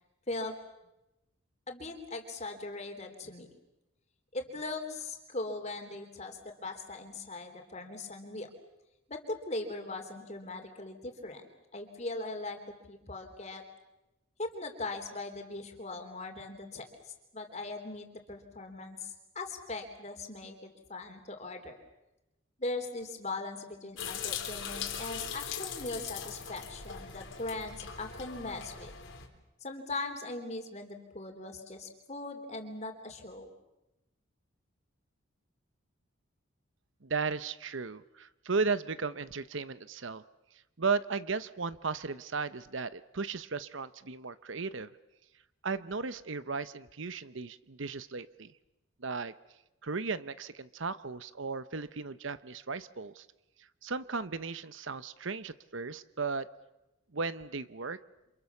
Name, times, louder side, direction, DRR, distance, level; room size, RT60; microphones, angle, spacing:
voice 1, 1.7-3.5 4.3-8.5 9.1-11.4 11.7-12.6 12.9-13.6 14.4-21.8 22.6-28.9 29.6-33.5, left 2 dB, 35° left, 5 dB, 3.7 m, -40 dB
sound 1, 24.0-29.3, left 7 dB, 65° left, 3.9 m, -40 dB
voice 2, 37.0-40.2 40.8-44.9 45.6-48.5 49.0-49.3 49.8-53.3 53.8-56.5 57.1-58.0, right 4 dB, 65° right, 14 dB, 0.9 m, -35 dB
29.5 x 27.0 x 7.2 m, 0.95 s
head